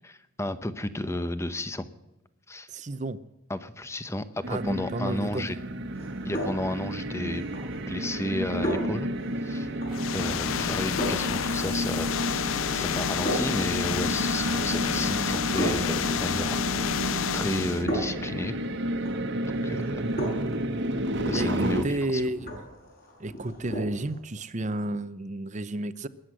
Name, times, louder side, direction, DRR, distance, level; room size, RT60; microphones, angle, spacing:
voice 1, 0.4-1.9 2.5-2.7 3.5-5.6 6.2-7.4 7.9-9.1 9.4-9.7 10.1-16.6 17.0-18.5 19.5-20.0 21.2-22.2, left 1 dB, 15° left, 12 dB, 0.8 m, -32 dB
voice 2, 2.7-3.2 4.5-5.5 20.3-20.6 21.3-22.5 23.2-26.1, right 1 dB, 35° right, 15 dB, 0.7 m, -31 dB
sound 1, 4.4-21.8, right 1 dB, 60° right, 1.4 m, -31 dB
sound 2, 5.9-24.2, equal, 45° left, 6.1 m, -37 dB
sound 3, 9.9-17.9, left 9 dB, 75° left, 0.4 m, -30 dB
21.0 x 8.0 x 7.6 m, 0.99 s
head